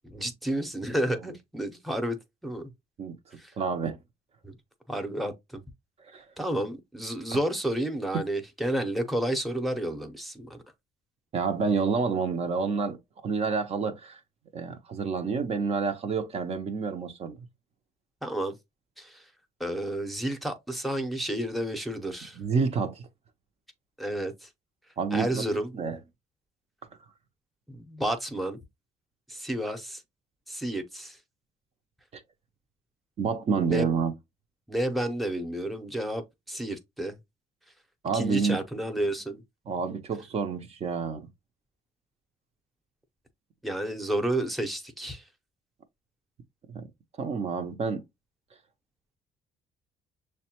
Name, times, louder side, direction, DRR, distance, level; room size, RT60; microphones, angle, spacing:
voice 1, 0.0-2.2 2.4-2.7 3.4-3.5 4.4-4.5 4.9-5.6 6.4-10.6 18.2-18.5 19.0-19.2 19.6-22.4 24.0-24.5 25.1-25.7 27.7-28.6 29.3-30.0 30.5-31.2 33.7-33.8 34.7-37.1 38.1-39.4 43.6-45.2, right 1 dB, ahead, 0.7 m, -31 dB
voice 2, 3.6-4.0 6.1-6.2 11.3-14.2 14.5-17.4 22.4-23.0 25.0-25.4 25.7-26.0 32.1-32.2 33.2-34.1 38.0-38.6 39.7-41.3 46.7-46.8 47.2-48.0, right 5 dB, 45° right, 0.6 m, -28 dB
6.4 x 2.2 x 2.9 m
cardioid pair, 100°, 15 cm